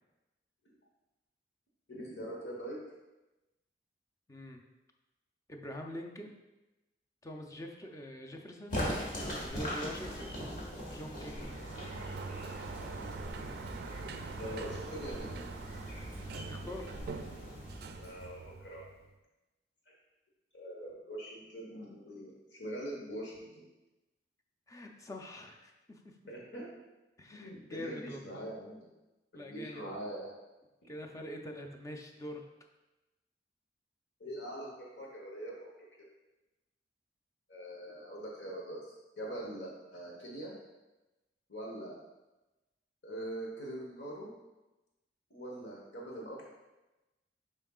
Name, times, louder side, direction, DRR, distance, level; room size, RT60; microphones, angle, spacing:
voice 1, 1.9-2.8 14.3-15.3 18.0-18.9 19.9-20.0 20.5-23.6 26.3-26.7 27.3-28.9 29.3-30.3 30.8-30.9 34.2-35.5 37.5-40.5 41.5-42.0 43.0-44.3 45.3-46.5, right 1 dB, 80° left, -3 dB, 1.2 m, -43 dB
voice 2, 4.3-4.6 5.5-6.4 7.2-8.8 9.4-10.4 10.9-11.6 16.5-16.9 24.7-26.1 27.2-28.5 29.3-29.8 30.9-32.4, left 1 dB, 20° left, 2 dB, 0.5 m, -44 dB
sound 1, 8.7-18.5, equal, 45° left, 1.7 m, -41 dB
Sliding door, 11.3-19.1, right 4 dB, 60° right, 0.4 m, -44 dB
7.3 x 5.4 x 2.4 m, 1.0 s
head